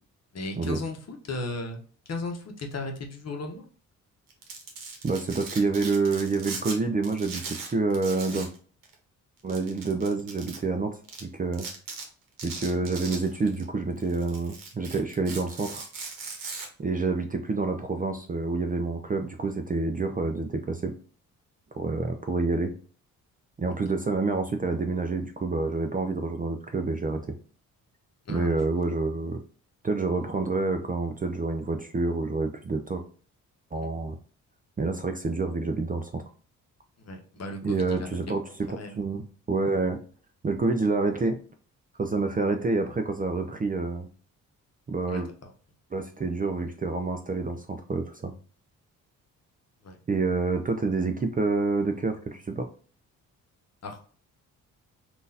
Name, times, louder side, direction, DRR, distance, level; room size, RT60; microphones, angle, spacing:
voice 1, 0.3-1.8 2.1-3.6 28.3-28.5 37.0-38.4 38.7-39.0 45.1-45.5 49.8-50.0 53.8-54.0, left 2 dB, 40° left, 3 dB, 0.9 m, -36 dB
Domestic sounds home sounds, 4.3-6.8 7.0-8.6 8.8-8.9 9.5-10.6 11.1-11.2 11.5-12.0 12.4-13.6 14.0-16.7, right 4 dB, 60° right, 1.0 m, -39 dB
voice 2, 5.0-8.5 9.4-10.9 11.2-11.7 12.4-15.8 16.8-20.9 21.8-22.7 23.6-27.2 28.3-29.4 29.8-33.0 33.7-34.2 34.8-36.2 37.6-40.0 40.4-41.4 42.0-44.1 44.9-45.3 45.9-48.3 50.1-52.7, right 3 dB, 25° right, 5 dB, 0.5 m, -28 dB
3.7 x 2.5 x 2.7 m, 0.40 s
hypercardioid pair, 50°, 38 cm